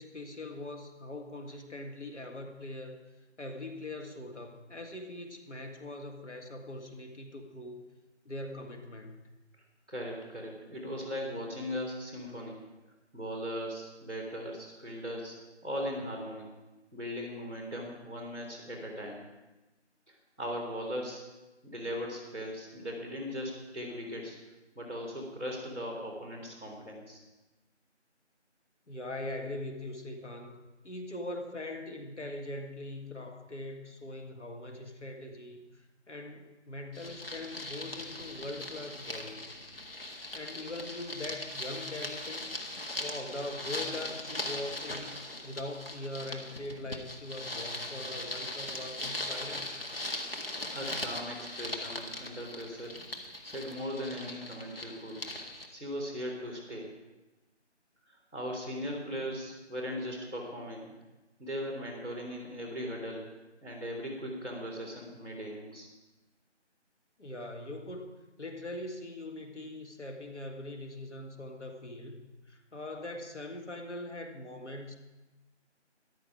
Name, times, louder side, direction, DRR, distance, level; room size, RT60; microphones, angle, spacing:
voice 1, 0.0-3.0 3.4-7.8 8.3-9.2 28.9-39.5 40.3-42.5 43.0-49.7 67.2-68.1 68.4-75.0, left 1 dB, 75° left, 4 dB, 1.9 m, -42 dB
voice 2, 9.9-12.6 13.1-15.4 15.6-16.5 16.9-19.2 20.1-21.2 21.6-24.4 24.7-27.2 50.7-53.1 53.4-55.2 55.7-56.9 58.1-60.9 61.4-63.3 63.6-65.9, equal, 10° left, -14 dB, 2.1 m, -38 dB
sound 1, 36.9-55.7, left 1 dB, 55° left, 1.6 m, -40 dB
14.0 x 12.0 x 5.0 m, 1.1 s
figure-of-eight pair, 180°, 35 cm